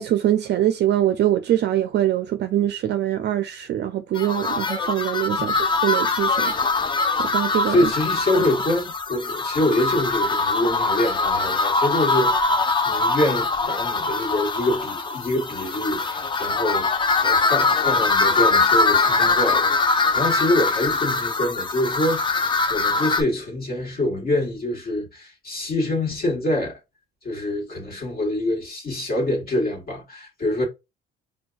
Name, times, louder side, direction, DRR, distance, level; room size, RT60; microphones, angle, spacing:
voice 1, 0.0-6.6 7.2-7.9 8.4-8.5, right 12 dB, 55° right, 0.4 m, -23 dB
sound 1, 4.1-23.2, left 3 dB, 25° left, 0.4 m, -22 dB
voice 2, 7.7-26.8 27.2-30.7, left 1 dB, 45° left, 1.4 m, -25 dB
4.4 x 2.2 x 2.3 m
cardioid pair, 100°, 21 cm